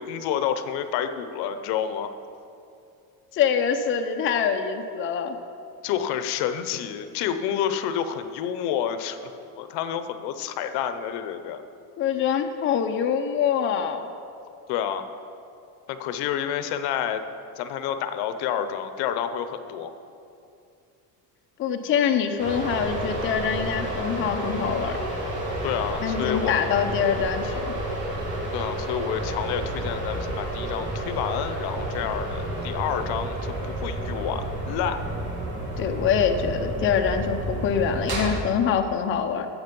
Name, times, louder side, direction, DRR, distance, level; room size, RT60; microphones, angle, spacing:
voice 1, 0.0-2.1 5.8-9.2 9.6-11.6 14.7-15.1 15.9-17.2 17.6-19.9 25.6-26.7 28.5-35.0, left 9 dB, 75° left, 10 dB, 0.8 m, -29 dB
voice 2, 3.3-5.4 12.0-14.1 21.6-25.0 26.0-27.7 35.8-39.5, left 7 dB, 30° left, 5 dB, 0.6 m, -24 dB
sound 1, 22.4-38.3, right 1 dB, 50° right, 2.9 m, -30 dB
14.0 x 7.4 x 5.3 m, 2.6 s
cardioid pair, 160°, 39 cm